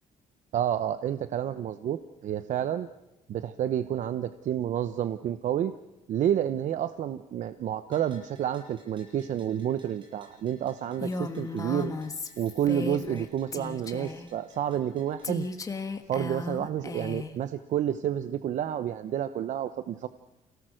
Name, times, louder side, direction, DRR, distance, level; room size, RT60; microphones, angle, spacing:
voice 1, 0.5-2.9 3.3-5.7 6.1-11.9 12.4-15.5 16.1-20.1, right 10 dB, 65° right, 11 dB, 0.8 m, -29 dB
Bell, 7.9-15.5, equal, 35° right, 7.7 m, -59 dB
Female speech woman speaking, 11.0-13.3 13.5-14.3 15.2-17.4, left 3 dB, 25° left, 1.4 m, -35 dB
28.0 x 17.5 x 6.4 m, 0.97 s
cardioid pair, 140°, 14 cm